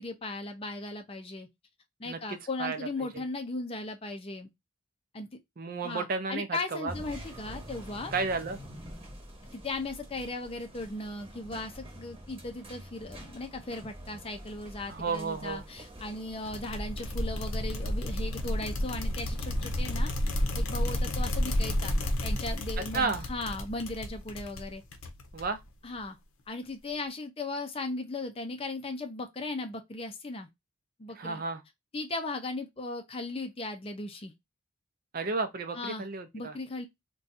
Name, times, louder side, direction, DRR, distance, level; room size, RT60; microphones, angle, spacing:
voice 1, 0.0-1.5 2.0-4.5 5.1-5.3 5.8-8.1 9.5-20.1 20.5-24.8 25.8-26.2 26.5-30.5 31.0-31.4 31.9-34.3 35.7-36.0 36.3-36.9, left 2 dB, 25° left, 0.5 m, -37 dB
voice 2, 2.0-2.9 5.6-6.9 8.1-8.6 14.9-15.6 22.9-23.3 25.3-25.6 31.1-31.6 35.1-36.6, right 4 dB, 45° right, 0.5 m, -32 dB
sound 1, 6.9-20.0, equal, 25° right, 0.9 m, -47 dB
sound 2, 16.5-25.7, left 1 dB, 75° left, 0.7 m, -31 dB
2.6 x 2.3 x 3.9 m
head